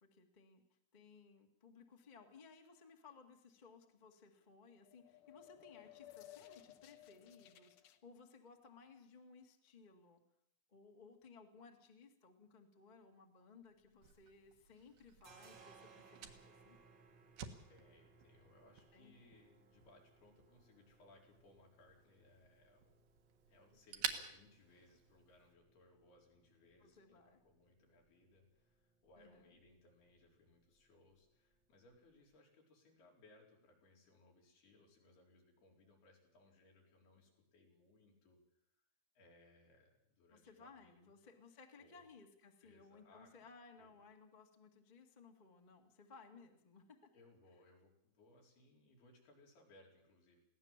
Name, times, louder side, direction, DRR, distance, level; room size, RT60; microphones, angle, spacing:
voice 1, 0.0-0.6 0.9-10.2 10.7-16.8 18.9-19.1 26.8-27.4 29.2-29.5 40.3-47.1, left 4 dB, 20° left, 3 dB, 1.1 m, -61 dB
sound 1, 4.7-8.0, left 14 dB, 70° left, 2.1 m, -59 dB
sound 2, 13.8-14.6 14.8-32.4, right 4 dB, 50° right, 1.4 m, -68 dB
Fire, 14.0-25.5, right 8 dB, 75° right, 3.4 m, -51 dB
voice 2, 17.7-23.0 23.5-38.4 38.7-38.8 39.2-41.1 41.8-42.1 42.6-43.5 43.8-44.0 47.1-50.4, left 2 dB, 85° left, -1 dB, 6.4 m, -67 dB
22.5 x 17.0 x 7.4 m, 0.74 s
omnidirectional pair, 4.4 m